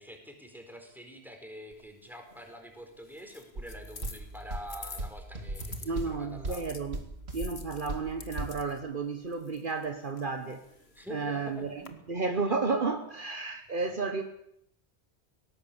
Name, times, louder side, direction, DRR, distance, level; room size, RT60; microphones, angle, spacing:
voice 1, 0.0-6.6 10.9-12.1, equal, ahead, 4.6 m, -46 dB
sound 1, 1.7-5.9 6.5-11.9, left 4 dB, 80° left, 2.0 m, -50 dB
sound 2, 3.5-8.6, right 2 dB, 85° right, 2.6 m, -39 dB
voice 2, 5.8-7.0 7.3-10.6 11.1-11.8 12.1-14.2, right 4 dB, 55° right, 1.4 m, -32 dB
19.0 x 17.5 x 8.7 m
omnidirectional pair, 1.1 m